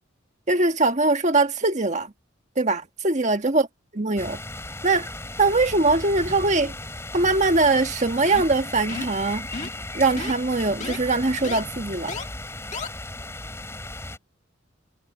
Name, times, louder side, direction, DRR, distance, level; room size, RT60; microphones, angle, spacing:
voice 1, 0.5-2.1 2.6-3.7 3.9-4.4 4.8-5.1 5.4-6.7 7.1-9.5 9.9-12.1, right 3 dB, 35° right, 1.5 m, -22 dB
sound 1, 4.2-14.2, left 2 dB, 15° left, 3.7 m, -36 dB
sound 2, 8.3-8.6 8.9-9.2 9.5-9.8 10.2-10.3 10.8-11.0 11.4-11.6 12.1-12.2 12.7-12.9, left 4 dB, 35° left, 2.1 m, -33 dB
head